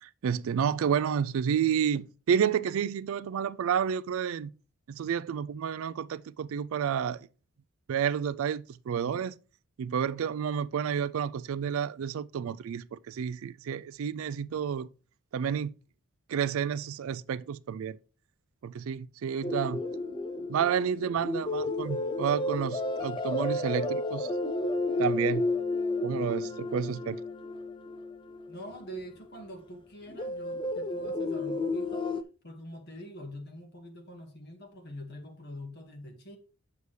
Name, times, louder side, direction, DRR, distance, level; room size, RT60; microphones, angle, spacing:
voice 1, 0.0-4.5 4.9-7.3 7.9-9.3 9.8-14.9 15.3-15.7 16.3-18.0 18.6-19.8 20.5-24.3 25.0-25.5 26.0-27.2, right 7 dB, 70° right, 0.3 m, -30 dB
sound 1, 19.4-29.0 30.1-32.2, left 2 dB, 20° left, 0.3 m, -32 dB
voice 2, 28.5-32.1 32.4-36.4, equal, 50° left, 1.7 m, -44 dB
8.1 x 6.8 x 3.2 m
head